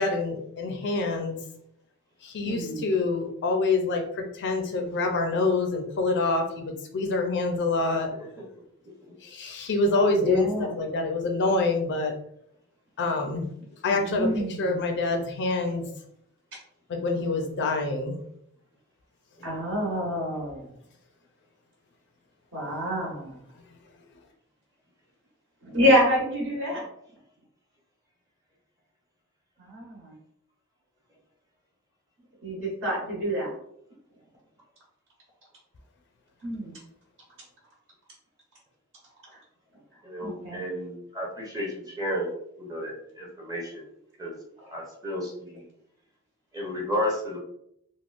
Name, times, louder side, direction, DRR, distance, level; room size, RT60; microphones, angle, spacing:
voice 1, 0.0-1.4 2.2-8.1 9.2-12.2 13.0-13.5 13.8-15.9 16.9-18.2, left 3 dB, 55° left, 4 dB, 0.4 m, -26 dB
voice 2, 2.4-2.8 10.2-10.7 13.9-14.6 19.4-20.7 22.5-23.4 25.6-26.8 29.6-30.1 32.4-33.5 36.4-36.7 40.2-40.6 44.6-44.7, equal, 65° right, -5 dB, 1.2 m, -27 dB
voice 3, 40.0-42.3 42.6-43.9 44.2-44.4 44.7-45.7 46.5-47.4, equal, 15° right, -3 dB, 0.7 m, -33 dB
3.5 x 2.1 x 2.4 m, 0.73 s
head